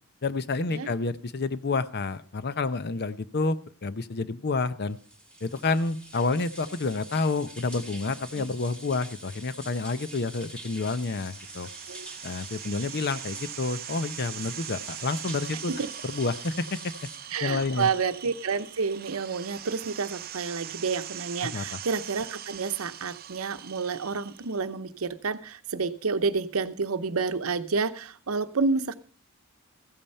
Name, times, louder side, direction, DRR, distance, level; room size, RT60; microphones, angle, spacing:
voice 1, 0.2-5.0 5.4-11.7 12.2-15.7 16.0-16.9 17.4-17.9 21.4-21.8, left 3 dB, 50° left, 14 dB, 0.7 m, -29 dB
sound 1, 4.9-17.2, right 1 dB, 5° left, 2.6 m, -45 dB
sound 2, 10.9-24.6, right 11 dB, 45° right, 0.6 m, -42 dB
voice 2, 17.3-28.9, right 4 dB, 80° right, 12 dB, 0.8 m, -29 dB
15.0 x 8.8 x 5.5 m, 0.42 s
head